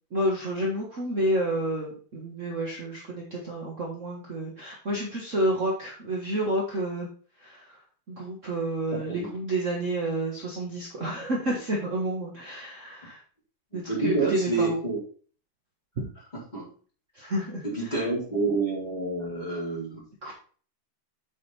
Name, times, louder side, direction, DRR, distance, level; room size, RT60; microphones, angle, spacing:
voice 1, 0.1-7.1 7.4-7.6 8.1-13.2 13.7-14.8 16.0-16.1 17.1-17.9 20.2-20.3, right 1 dB, 45° right, -3 dB, 1.0 m, -30 dB
voice 2, 8.9-9.3 13.9-15.0 16.5-16.7 17.2-17.3 17.6-20.0, right 3 dB, 15° left, -6 dB, 4.1 m, -28 dB
7.6 x 5.7 x 4.3 m, 0.42 s
omnidirectional pair, 3.7 m